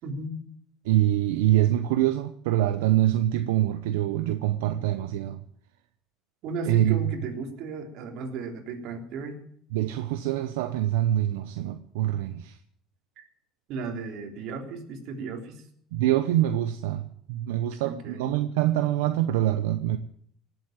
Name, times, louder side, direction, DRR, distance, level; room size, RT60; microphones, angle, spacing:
voice 1, 0.0-0.4 6.4-9.4 13.2-13.3 13.7-15.6 17.8-18.3, right 3 dB, 65° right, 3.6 m, -35 dB
voice 2, 0.8-5.4 6.7-7.0 9.7-12.6 15.9-20.0, right 13 dB, 90° right, 0.8 m, -25 dB
18.0 x 8.2 x 9.0 m
supercardioid pair, 115°, 0 cm